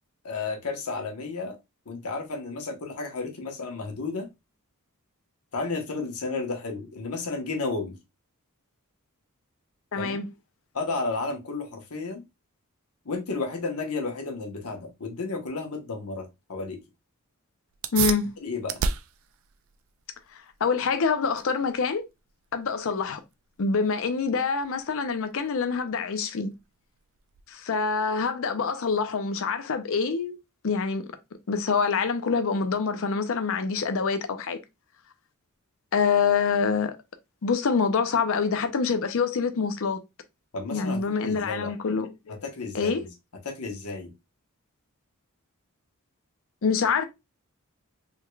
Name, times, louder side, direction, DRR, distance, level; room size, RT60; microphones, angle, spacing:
voice 1, 0.2-1.6 1.9-4.3 5.5-8.0 9.9-10.2 10.7-12.2 13.0-16.8 18.4-18.8 40.5-41.7 42.4-43.1 43.4-44.1, left 3 dB, 80° left, 1.0 m, -32 dB
voice 2, 9.9-10.3 17.9-18.3 20.3-22.0 22.5-23.2 23.6-26.5 27.5-30.4 30.6-31.1 31.5-34.6 35.9-37.0 37.4-40.0 40.7-42.4 42.7-43.0 46.6-47.0, left 5 dB, 60° left, 0.5 m, -26 dB
sound 1, 17.7-27.8, right 6 dB, 65° right, 0.3 m, -36 dB
3.5 x 3.2 x 2.2 m
head